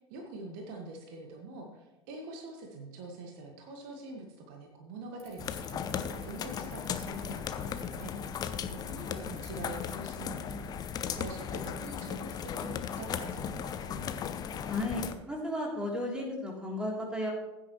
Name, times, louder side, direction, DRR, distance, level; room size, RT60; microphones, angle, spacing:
voice 1, 0.1-8.3 8.7-14.1, right 2 dB, 50° right, 2 dB, 1.8 m, -45 dB
Bicycle, 5.2-12.5, right 3 dB, 65° right, 3.4 m, -58 dB
sound 1, 5.4-15.1, left 8 dB, 25° left, 0.8 m, -37 dB
voice 2, 14.6-17.3, left 1 dB, 5° right, -2 dB, 3.4 m, -34 dB
15.5 x 9.7 x 3.2 m, 1.1 s
figure-of-eight pair, 85°, 14 cm